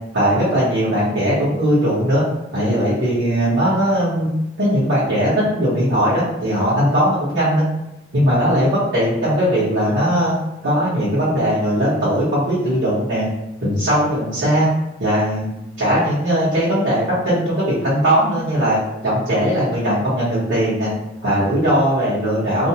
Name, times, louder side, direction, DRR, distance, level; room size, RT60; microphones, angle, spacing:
voice 1, 0.1-2.2 2.5-4.3 4.6-7.6 8.1-10.3 10.6-13.3 13.6-14.7 15.0-15.5 15.8-20.9 21.2-22.7, equal, 60° right, -12 dB, 0.9 m, -19 dB
2.5 x 2.0 x 2.8 m, 0.89 s
head